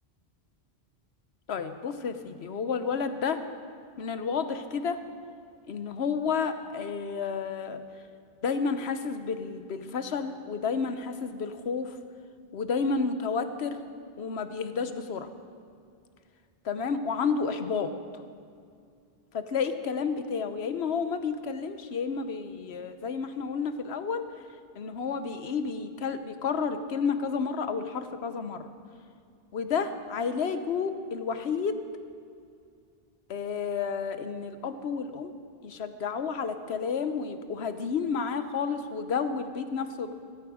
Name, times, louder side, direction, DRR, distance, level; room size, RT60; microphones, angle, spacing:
voice 1, 1.5-3.4 4.0-5.0 5.7-7.8 8.4-12.0 12.5-13.8 14.2-15.3 16.6-17.9 19.3-24.2 24.7-28.6 29.5-31.8 33.3-35.3 35.6-40.1, left 5 dB, 85° left, 9 dB, 1.1 m, -31 dB
16.5 x 12.5 x 5.0 m, 2.4 s
omnidirectional pair, 1.1 m